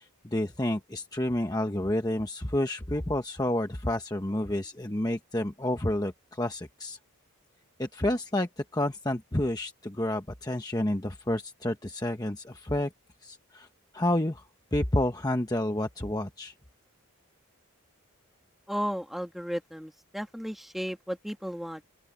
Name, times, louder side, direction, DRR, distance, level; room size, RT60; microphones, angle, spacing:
voice 1, 0.0-7.0 7.8-12.9 13.2-13.7 13.9-14.4 14.7-16.5, left 1 dB, 15° left, 1.0 m, -29 dB
voice 2, 18.7-21.8, equal, ahead, 2.0 m, -34 dB
open air
head